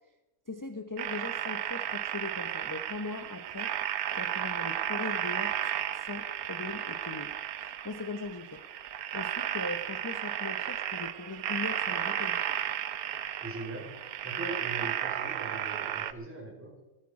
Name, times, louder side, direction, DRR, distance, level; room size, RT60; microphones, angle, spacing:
voice 1, 0.5-3.7 4.1-8.6 9.1-12.4, left 3 dB, 20° left, 7 dB, 0.6 m, -40 dB
sound 1, 1.0-16.1, right 10 dB, 80° right, 1.3 m, -34 dB
voice 2, 13.4-16.8, right 2 dB, 10° right, -1 dB, 3.9 m, -41 dB
18.0 x 13.5 x 4.8 m, 1.0 s
omnidirectional pair, 1.5 m